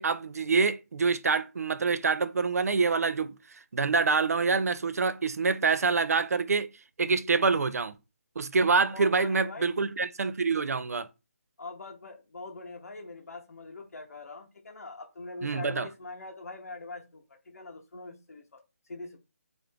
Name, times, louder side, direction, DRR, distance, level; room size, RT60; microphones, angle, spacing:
voice 1, 0.0-3.3 3.7-6.7 7.0-7.9 8.4-11.1 15.4-15.9, right 4 dB, 85° right, 0.4 m, -26 dB
voice 2, 8.9-9.7 11.6-18.6 18.9-19.2, left 3 dB, 80° left, 0.7 m, -43 dB
3.2 x 2.5 x 3.3 m
hypercardioid pair, 170°, 8 cm